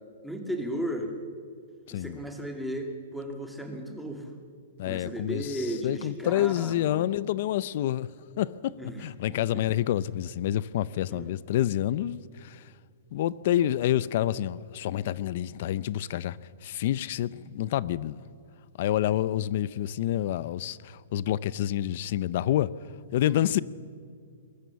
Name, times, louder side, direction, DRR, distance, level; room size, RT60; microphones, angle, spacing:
voice 1, 0.2-1.1 1.9-4.3 4.8-7.0 8.8-9.0 11.1-11.3 23.2-23.5, equal, ahead, 2.3 m, -35 dB
voice 2, 1.9-2.2 4.8-8.1 8.4-12.6 13.1-16.4 16.6-18.2 18.8-22.7 23.1-23.6, left 12 dB, 50° left, 0.6 m, -28 dB
22.5 x 20.0 x 7.0 m
hypercardioid pair, 160°, 0 cm